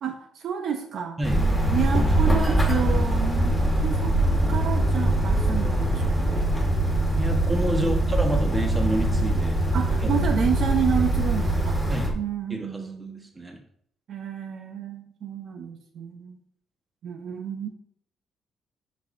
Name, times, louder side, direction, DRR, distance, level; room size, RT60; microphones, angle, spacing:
voice 1, 0.0-1.2 1.7-4.1 4.5-6.6 7.7-8.1 9.7-11.8 12.1-13.3 14.1-16.4 17.0-17.7, right 7 dB, 70° right, 5 dB, 0.8 m, -30 dB
sound 1, 1.2-12.1, right 1 dB, ahead, 2.0 m, -22 dB
voice 2, 7.2-9.6 11.9-12.2 12.5-12.8 13.3-13.6, right 2 dB, 20° right, 3 dB, 1.4 m, -28 dB
8.0 x 6.3 x 2.7 m, 0.66 s
cardioid pair, 100°, 0 cm